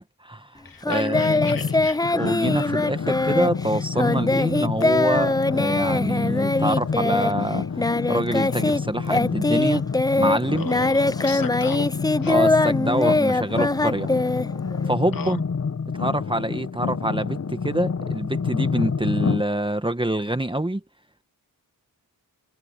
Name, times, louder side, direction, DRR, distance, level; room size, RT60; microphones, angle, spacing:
voice 1, 0.0-1.7 2.1-7.6 8.1-9.8 10.2-10.7 12.3-14.1 14.9-15.4 16.0-20.8, right 1 dB, 15° right, 1.4 m, -26 dB
voice 2, 0.6-2.0 10.5-11.9 12.2-12.4 15.1-15.4, left 5 dB, 60° left, 1.9 m, -35 dB
Singing, 0.8-8.8 9.1-14.9, left 2 dB, 10° left, 0.4 m, -22 dB
sound 1, 1.1-19.4, left 5 dB, 45° left, 1.0 m, -28 dB
wide cardioid pair, 90°, 39 cm